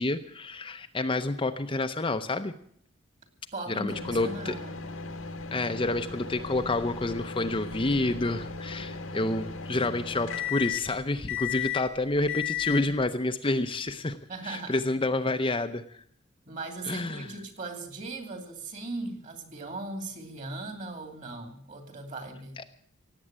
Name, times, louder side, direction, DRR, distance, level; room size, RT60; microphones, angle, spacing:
voice 1, 0.0-2.5 3.7-4.6 5.5-14.2 14.4-15.8 16.9-17.3 22.6-22.7, left 2 dB, 25° left, 7 dB, 0.7 m, -29 dB
voice 2, 3.5-4.8 14.3-14.8 16.5-22.6, right 2 dB, 40° right, 6 dB, 2.6 m, -38 dB
sound 1, 3.9-13.1, left 7 dB, 90° left, 1.7 m, -36 dB
17.5 x 8.5 x 8.9 m, 0.64 s
head